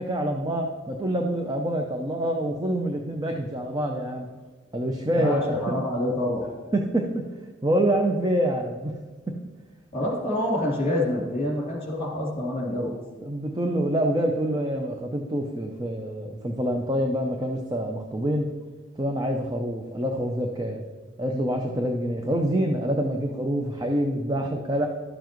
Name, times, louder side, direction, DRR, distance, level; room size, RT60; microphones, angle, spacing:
voice 1, 0.0-4.3 4.7-5.7 6.7-7.3 7.6-9.0 9.3-9.4 10.0-10.1 13.2-18.5 19.0-20.8 21.2-24.9, right 1 dB, 20° right, 2 dB, 0.6 m, -26 dB
voice 2, 5.1-6.5 9.9-12.9, left 1 dB, 35° left, -3 dB, 3.1 m, -27 dB
12.0 x 7.0 x 3.0 m, 1.4 s
head